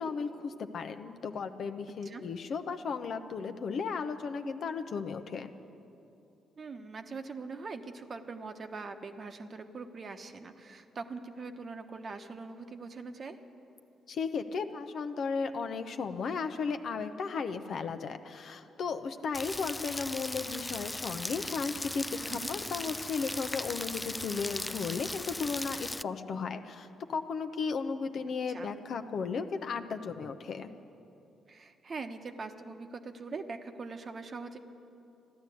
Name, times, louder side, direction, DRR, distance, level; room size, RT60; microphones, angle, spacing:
voice 1, 0.0-5.5 14.1-30.7, left 5 dB, 60° left, 8 dB, 0.8 m, -35 dB
voice 2, 6.6-13.4 22.3-22.5 28.5-28.7 31.5-34.6, right 4 dB, 50° right, 7 dB, 1.1 m, -42 dB
Rain, 19.3-26.0, left 2 dB, 15° left, 0.3 m, -38 dB
14.5 x 11.5 x 8.4 m, 2.8 s
hypercardioid pair, 45°, 0 cm